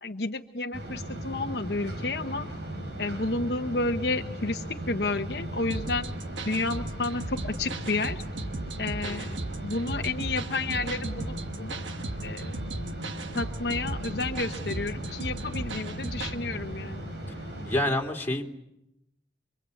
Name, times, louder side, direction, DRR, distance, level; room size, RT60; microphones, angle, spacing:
voice 1, 0.0-2.5 3.0-6.1 6.5-8.2 8.8-9.3 9.6-11.8 12.2-12.6 13.3-17.0, left 3 dB, 60° left, 5 dB, 1.1 m, -31 dB
sound 1, 0.7-17.8, equal, 65° right, 7.7 m, -37 dB
sound 2, 5.7-16.4, right 2 dB, 85° right, 1.4 m, -38 dB
voice 2, 9.0-9.4 17.3-17.4 17.6-18.4, left 1 dB, 10° left, 0 dB, 3.3 m, -29 dB
26.5 x 25.0 x 8.6 m, 0.85 s
head